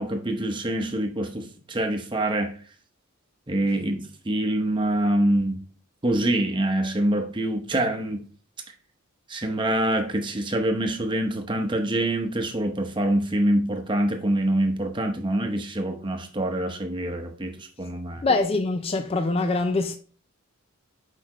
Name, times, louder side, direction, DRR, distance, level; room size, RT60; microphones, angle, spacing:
voice 1, 0.0-2.6 3.5-5.6 6.0-8.2 9.3-18.2, right 1 dB, 20° right, 0.8 m, -25 dB
voice 2, 18.2-20.0, left 3 dB, 25° left, 0.3 m, -24 dB
6.4 x 4.9 x 3.0 m
head